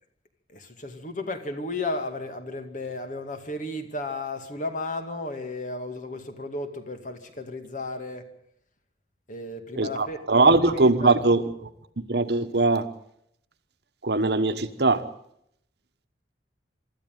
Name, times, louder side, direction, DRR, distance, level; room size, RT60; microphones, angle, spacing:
voice 1, 0.5-8.2 9.3-11.2, left 2 dB, 45° left, 7 dB, 2.3 m, -34 dB
voice 2, 9.8-11.7 12.0-12.9 14.0-15.0, right 3 dB, 65° right, 10 dB, 1.3 m, -21 dB
24.5 x 13.5 x 9.2 m, 0.73 s
head